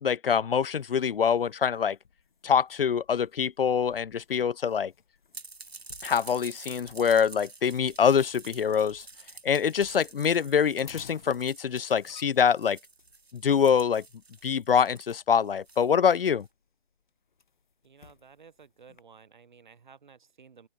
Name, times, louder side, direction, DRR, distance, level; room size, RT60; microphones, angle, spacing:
voice 1, 0.0-2.0 2.4-4.9 6.0-9.1 9.4-12.8 13.3-14.0 14.4-16.5, left 7 dB, 65° left, 0.5 m, -25 dB
sound 1, 0.6-19.0, left 6 dB, 50° left, 2.1 m, -58 dB
sound 2, 5.3-16.4, right 3 dB, 80° right, 2.3 m, -48 dB
voice 2, 17.8-20.7, right 6 dB, 50° right, 6.6 m, -54 dB
open air
figure-of-eight pair, 155°, 31 cm